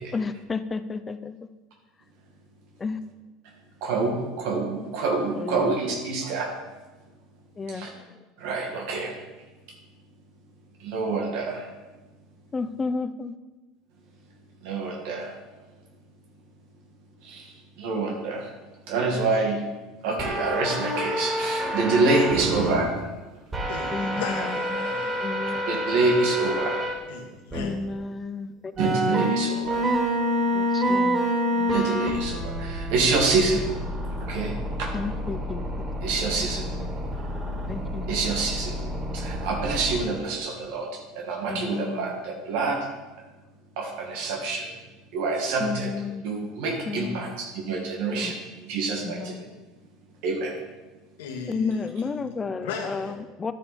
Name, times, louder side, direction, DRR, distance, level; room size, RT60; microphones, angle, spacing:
voice 1, 0.1-1.4 2.8-3.0 5.3-5.7 7.6-7.9 12.5-13.3 23.9-24.2 24.7-24.9 25.2-25.6 27.6-28.5 29.1-29.3 30.5-32.1 34.9-35.7 37.7-38.3 41.5-42.1 45.6-46.2 46.9-47.3 48.1-48.3 49.0-49.4 51.5-53.1 53.4-53.5, left 4 dB, 20° left, 0.7 m, -32 dB
voice 2, 3.8-6.5 7.7-7.9 8.4-9.1 10.8-11.7 14.6-15.3 17.2-17.5 17.8-18.5 18.9-19.6 20.0-22.9 25.7-26.9 28.8-29.8 31.7-33.6 34.2-34.9 36.0-36.6 38.1-38.8 39.1-40.9 41.1-42.9 43.8-44.7 45.1-45.9 46.2-48.4 48.7-49.5 50.2-50.5, right 3 dB, 75° right, 2.2 m, -26 dB
sound 1, 20.2-22.8 23.5-26.9 27.5-27.6 28.8-40.0, equal, 20° right, 4.0 m, -28 dB
voice 3, 23.7-25.3 27.1-27.9 41.5-41.6 51.2-53.2, left 6 dB, 90° left, 1.9 m, -36 dB
11.0 x 8.7 x 4.4 m
supercardioid pair, 110°, 0 cm